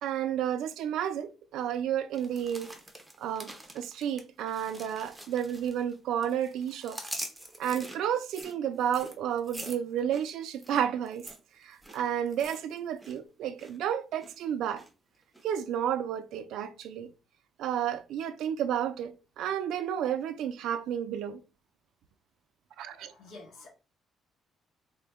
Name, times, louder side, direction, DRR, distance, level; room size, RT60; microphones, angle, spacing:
voice 1, 0.0-2.7 3.2-7.0 7.6-11.2 11.6-14.8 15.4-17.1 17.6-21.4 22.8-23.1, right 9 dB, 80° right, 0.3 m, -31 dB
sound 1, 2.1-6.0 6.2-13.2 13.4-13.8 14.2-14.9 15.3-15.4, right 1 dB, 5° right, 0.5 m, -45 dB
voice 2, 22.9-23.7, left 2 dB, 60° left, 1.4 m, -50 dB
3.6 x 2.1 x 3.4 m
cardioid pair, 165°, 0 cm